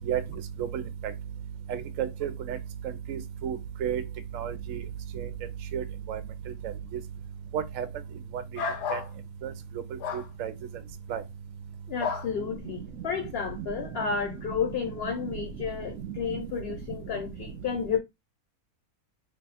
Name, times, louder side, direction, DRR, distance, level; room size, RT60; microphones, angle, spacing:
voice 1, 1.7-2.6 3.1-4.0 4.3-4.8 5.2-5.3 5.7-5.8 6.1-6.2 7.5-7.9 8.9-9.0 9.4-9.5 10.1-10.5 11.1-11.2 13.6-13.7 15.2-15.3 16.3-16.4, right 9 dB, 70° right, 0.8 m, -31 dB
sound 1, 8.5-9.1 10.0-10.3 12.0-12.3, left 6 dB, 85° left, 1.3 m, -31 dB
voice 2, 11.9-18.0, left 6 dB, 55° left, 0.7 m, -31 dB
3.4 x 2.2 x 4.0 m
omnidirectional pair, 1.7 m